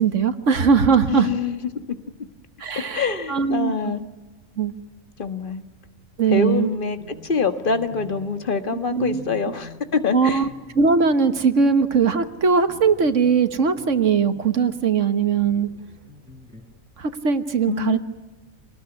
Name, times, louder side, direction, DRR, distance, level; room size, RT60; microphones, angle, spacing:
voice 1, 0.0-1.3 2.6-3.7 4.6-4.7 6.2-6.7 8.9-9.2 10.1-10.5 10.7-15.7 17.0-18.0, right 5 dB, 65° right, 10 dB, 1.6 m, -20 dB
voice 2, 1.1-2.0 2.9-4.0 5.2-5.6 6.2-10.4 17.7-18.0, left 5 dB, 40° left, 9 dB, 1.6 m, -25 dB
sound 1, 6.3-16.6, left 2 dB, 10° right, 5.4 m, -46 dB
26.5 x 19.5 x 9.8 m, 1.2 s
omnidirectional pair, 1.4 m